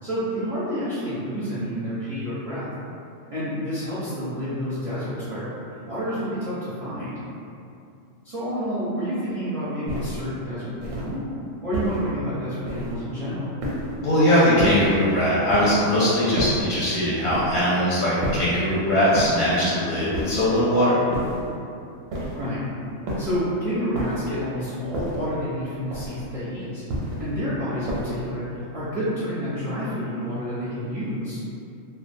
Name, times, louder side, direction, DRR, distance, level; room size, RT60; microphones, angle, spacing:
voice 1, 0.0-2.7 3.3-5.5 5.9-7.2 8.2-11.2 11.6-13.5 22.3-22.6 23.2-26.8 27.2-31.4, equal, 45° right, -12 dB, 0.4 m, -29 dB
sound 1, 9.9-10.3 10.8-11.2 11.7-12.1 12.7-13.1 13.6-14.0 14.6-14.9 15.5-15.8 16.4-16.8 17.3-17.7 18.2-18.6 19.1-19.6 20.1-20.6 21.1-21.5 22.1-22.5 23.1-23.4 23.9-24.4 24.9-25.3 25.9-26.3 26.9-27.3 27.9-28.3, right 1 dB, 90° right, 1.0 m, -30 dB
voice 2, 14.0-21.0, equal, 65° left, -10 dB, 0.8 m, -20 dB
2.3 x 2.3 x 2.6 m, 2.6 s
omnidirectional pair, 1.3 m